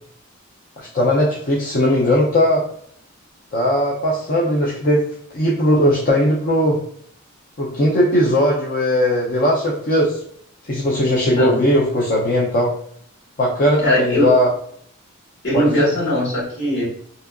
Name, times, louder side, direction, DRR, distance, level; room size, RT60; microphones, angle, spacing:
voice 1, 0.8-2.6 3.5-5.0 5.3-6.8 7.6-10.2 10.7-12.7 13.4-14.5 15.5-15.9, equal, 40° left, -3 dB, 0.5 m, -18 dB
voice 2, 11.3-11.6 13.8-14.3 15.4-16.9, left 1 dB, 55° left, -6 dB, 1.4 m, -20 dB
2.7 x 2.4 x 2.2 m, 0.65 s
head